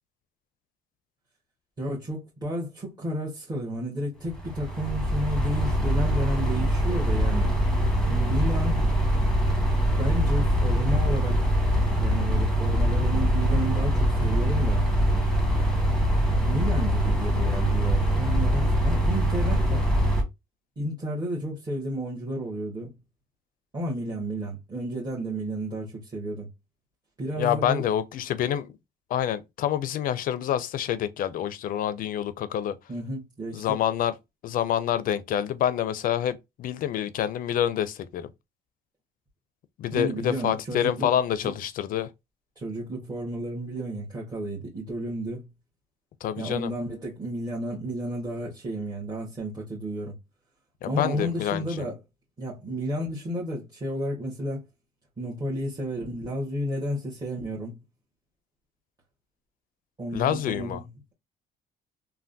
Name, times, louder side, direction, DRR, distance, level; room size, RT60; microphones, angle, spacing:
voice 1, 1.8-7.5 8.1-8.9 10.0-11.6 11.9-14.8 16.4-19.9 20.8-23.0 23.7-26.5 27.2-27.8 32.9-33.6 39.9-41.1 42.6-45.5 46.4-50.2 50.8-52.0 52.4-54.6 55.2-57.8 60.0-60.9, equal, 25° right, 1.3 m, -32 dB
sound 1, 4.3-20.2, equal, 5° left, 1.0 m, -23 dB
voice 2, 27.4-28.8 29.1-32.8 33.5-34.1 34.4-38.3 39.8-42.1 46.2-46.7 50.8-51.9 60.1-60.8, left 10 dB, 55° left, 0.4 m, -27 dB
3.3 x 2.2 x 2.6 m
cardioid pair, 110°, 17 cm